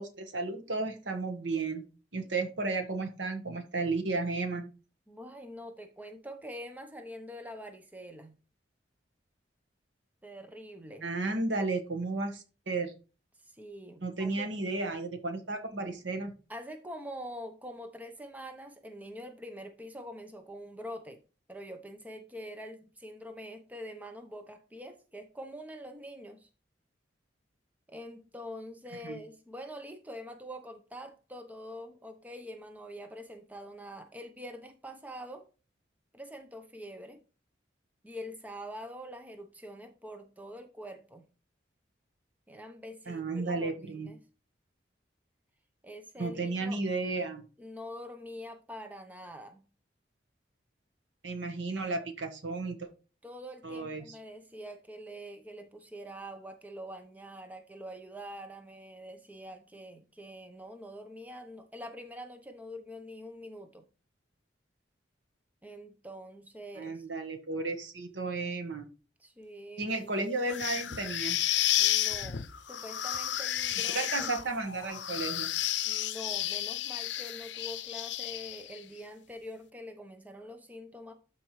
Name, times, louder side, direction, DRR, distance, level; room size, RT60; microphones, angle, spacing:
voice 1, 0.0-1.8 2.1-4.7 11.0-12.9 14.0-16.3 29.0-29.2 43.1-44.1 46.2-47.4 51.2-52.9 53.6-54.0 66.8-68.9 69.8-71.4 73.9-75.5, right 3 dB, 90° right, 1.4 m, -33 dB
voice 2, 5.1-8.4 10.2-11.1 13.5-14.5 16.5-21.2 21.5-26.5 27.9-35.5 36.1-37.2 38.0-41.2 42.5-44.2 45.8-46.8 47.6-49.6 53.2-63.8 65.6-67.1 69.2-69.9 71.8-74.3 75.8-81.1, equal, 10° right, 0.8 m, -45 dB
sound 1, 70.5-78.8, left 12 dB, 80° left, 0.6 m, -32 dB
12.5 x 4.5 x 3.2 m
head